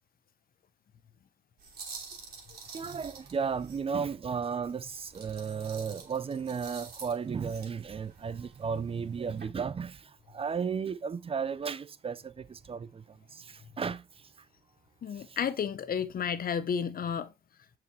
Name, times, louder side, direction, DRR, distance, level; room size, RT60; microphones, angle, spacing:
sound 1, 1.6-4.2 4.6-9.4, right 4 dB, 50° right, 2.8 m, -49 dB
voice 1, 2.7-14.0 15.3-15.4, right 6 dB, 30° right, 0.4 m, -34 dB
voice 2, 15.0-17.3, left 7 dB, 45° left, 0.7 m, -32 dB
6.8 x 4.9 x 3.1 m
cardioid pair, 90°, 20 cm